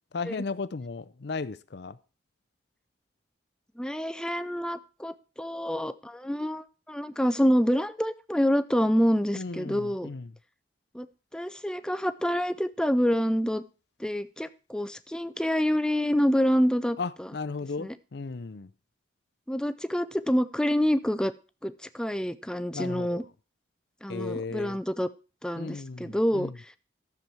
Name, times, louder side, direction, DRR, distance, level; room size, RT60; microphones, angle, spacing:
voice 1, 0.1-2.0 9.3-10.3 17.0-18.7 22.7-23.3 24.1-24.8 25.6-26.5, left 4 dB, 60° left, 0.5 m, -35 dB
voice 2, 3.8-10.1 10.9-11.1 11.3-13.6 14.0-17.3 17.8-17.9 19.5-21.3 21.6-23.2 24.0-25.1 25.4-26.8, equal, 5° left, 0.4 m, -27 dB
13.0 x 7.1 x 4.6 m
head